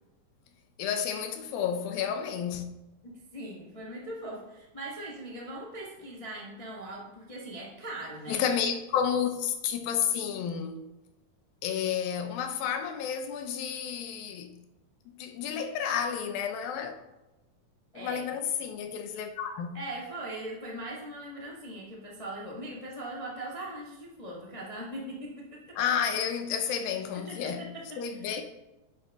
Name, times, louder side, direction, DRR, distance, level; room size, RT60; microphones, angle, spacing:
voice 1, 0.8-2.6 8.3-10.9 11.6-14.5 15.1-16.9 17.9-19.7 25.8-27.7 28.0-28.4, left 8 dB, 80° left, 2.6 m, -31 dB
voice 2, 3.0-8.4 17.9-18.2 19.7-25.8 27.3-28.3, right 1 dB, 35° left, 0.5 m, -40 dB
9.8 x 9.6 x 3.7 m
omnidirectional pair, 4.1 m